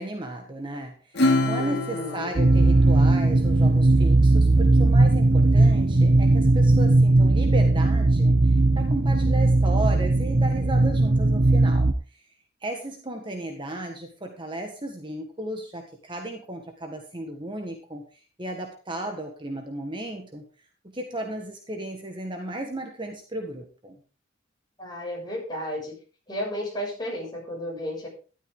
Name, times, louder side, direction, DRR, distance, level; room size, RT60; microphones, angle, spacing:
voice 1, 0.0-12.2 12.6-20.5 20.8-24.0, right 1 dB, 25° right, 3 dB, 1.6 m, -34 dB
Acoustic guitar / Strum, 1.1-4.1, left 2 dB, 55° left, 2.7 m, -27 dB
voice 2, 1.6-2.3 24.8-25.9 26.3-28.1, equal, 20° left, -2 dB, 7.1 m, -33 dB
sound 1, 2.4-11.9, right 2 dB, 45° right, 0.9 m, -18 dB
13.0 x 12.0 x 3.9 m, 0.36 s
head